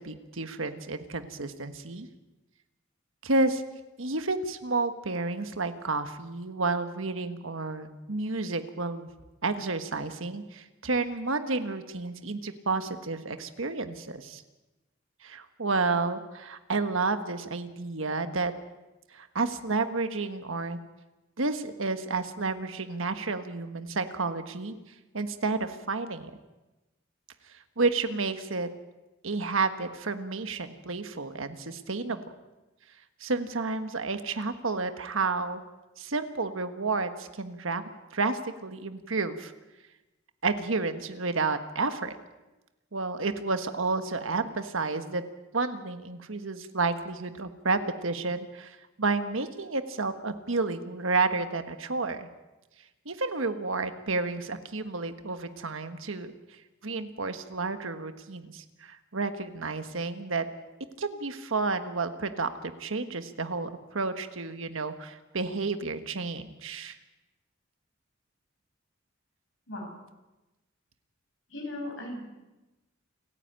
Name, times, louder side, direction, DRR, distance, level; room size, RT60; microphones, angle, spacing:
voice 1, 0.0-2.1 3.2-3.6 4.0-9.1 9.4-14.4 15.2-18.5 19.1-20.8 21.4-24.7 25.1-26.3 27.8-28.7 29.2-32.2 33.2-35.6 36.0-37.8 38.1-39.5 40.4-42.2 42.9-45.2 45.5-52.3 53.0-56.3 56.8-60.5 61.0-67.0, right 3 dB, 70° right, 9 dB, 1.4 m, -31 dB
voice 2, 71.5-72.2, left 1 dB, 65° left, 2 dB, 6.1 m, -37 dB
29.0 x 10.0 x 9.0 m, 1.1 s
head